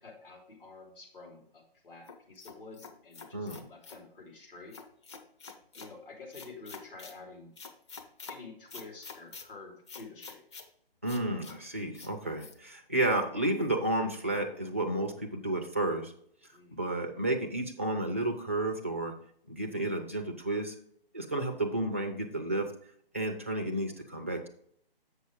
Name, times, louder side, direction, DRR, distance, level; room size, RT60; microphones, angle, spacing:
voice 1, 0.0-4.8 5.7-7.5 8.3-10.4 16.5-16.8, left 3 dB, 65° left, -1 dB, 3.2 m, -49 dB
sound 1, 2.1-4.0 4.7-5.9 6.3-7.2 7.6-8.4 8.7-9.5 9.9-10.7 11.1-11.6 11.9-12.1 12.4-12.5, left 4 dB, 30° left, 0.7 m, -47 dB
voice 2, 3.3-3.6 11.0-16.1 16.7-19.1 19.5-20.7 21.1-22.7 23.1-24.5, right 2 dB, 15° right, 3 dB, 0.3 m, -31 dB
7.9 x 6.1 x 3.6 m, 0.65 s
figure-of-eight pair, 145°, 30 cm